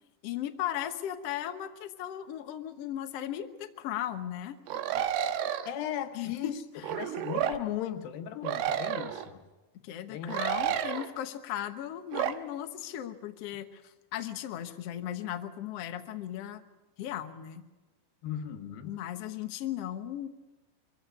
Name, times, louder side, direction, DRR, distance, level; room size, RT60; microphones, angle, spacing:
voice 1, 0.2-4.6 6.1-6.8 9.8-16.6 17.0-17.6 18.8-20.3, left 11 dB, 90° left, 7 dB, 1.3 m, -37 dB
sound 1, 4.7-5.7 6.8-7.6 8.4-9.3 10.3-11.1 12.1-12.3, right 10 dB, 80° right, 2.9 m, -30 dB
voice 2, 5.3-6.6 6.9-9.4 10.1-10.4 10.7-10.8 18.2-19.1, left 10 dB, 70° left, 8 dB, 2.7 m, -37 dB
23.0 x 15.0 x 9.4 m, 1.1 s
omnidirectional pair, 4.6 m